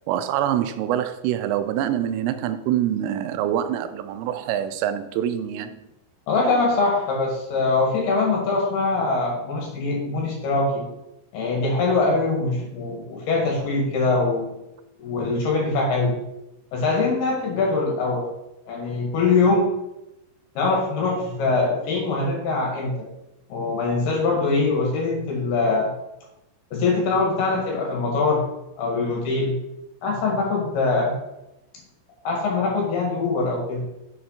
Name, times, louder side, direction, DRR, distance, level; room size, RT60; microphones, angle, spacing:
voice 1, 0.1-5.8, right 10 dB, 85° right, 9 dB, 3.1 m, -25 dB
voice 2, 6.3-10.8 11.3-14.5 15.0-16.2 16.7-18.2 18.7-19.7 20.5-23.1 23.5-25.9 26.7-28.4 28.8-29.6 30.0-31.2 32.2-33.8, left 3 dB, 60° left, -1 dB, 3.3 m, -23 dB
7.4 x 5.8 x 5.7 m, 0.92 s
omnidirectional pair, 5.8 m